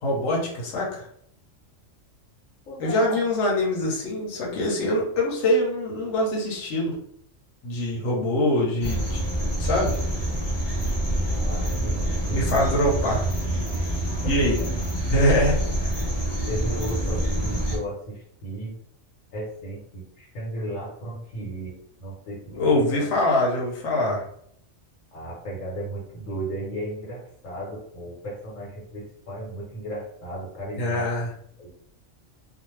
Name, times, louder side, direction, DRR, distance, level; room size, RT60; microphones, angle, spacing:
voice 1, 0.0-1.0 2.8-6.9 7.6-9.2 9.6-10.0 12.3-13.2 14.2-14.5 15.1-15.9 22.5-24.2 30.8-31.3, left 1 dB, 70° left, -2 dB, 1.0 m, -24 dB
voice 2, 2.7-3.3 11.2-12.7 14.2-14.5 16.5-18.7 19.3-23.1 25.1-31.1 31.6-31.7, right 1 dB, 85° left, -5 dB, 1.3 m, -35 dB
sound 1, 8.8-17.8, right 1 dB, 25° left, 0.7 m, -26 dB
2.5 x 2.1 x 3.1 m, 0.67 s
omnidirectional pair, 1.3 m